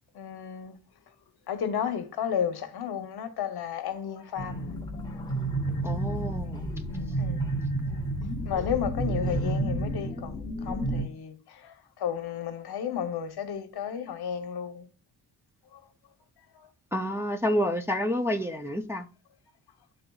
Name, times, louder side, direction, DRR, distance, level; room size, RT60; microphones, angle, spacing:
voice 1, 0.2-0.7 1.5-4.7 7.2-7.4 8.5-11.3 12.0-14.8, left 8 dB, 70° left, 1.0 m, -32 dB
sound 1, 4.4-11.0, right 1 dB, 10° left, 1.1 m, -30 dB
voice 2, 5.8-6.7 16.9-19.1, equal, 5° right, 0.4 m, -29 dB
11.5 x 3.8 x 2.3 m
wide cardioid pair, 155°, 39 cm